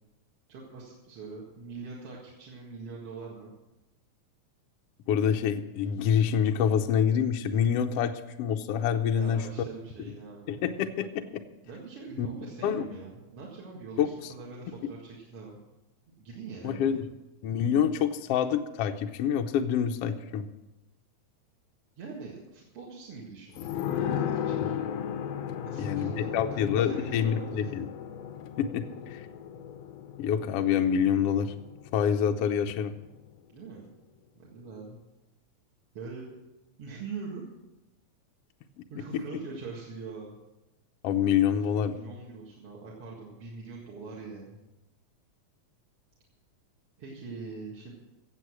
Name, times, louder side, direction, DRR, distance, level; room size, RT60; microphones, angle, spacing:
voice 1, 0.5-3.5 9.1-10.7 11.6-15.6 16.2-17.0 22.0-23.6 23.9-24.8 25.6-27.9 33.5-33.9 34.4-35.0 35.9-36.3 36.8-37.4 38.9-40.4 41.9-44.6 47.0-47.9, right 4 dB, 50° right, -4 dB, 2.6 m, -42 dB
voice 2, 5.1-9.5 10.5-11.2 12.2-12.3 12.6-12.9 14.0-14.1 16.6-17.1 17.4-20.5 24.6-24.8 25.8-27.9 28.6-29.2 30.2-31.5 31.9-32.9 39.1-39.2 41.0-42.0, left 8 dB, 75° left, 5 dB, 1.5 m, -26 dB
sound 1, 23.6-32.8 33.1-33.2, left 9 dB, 90° left, 2.3 m, -35 dB
16.5 x 7.8 x 6.2 m, 0.99 s
omnidirectional pair, 3.5 m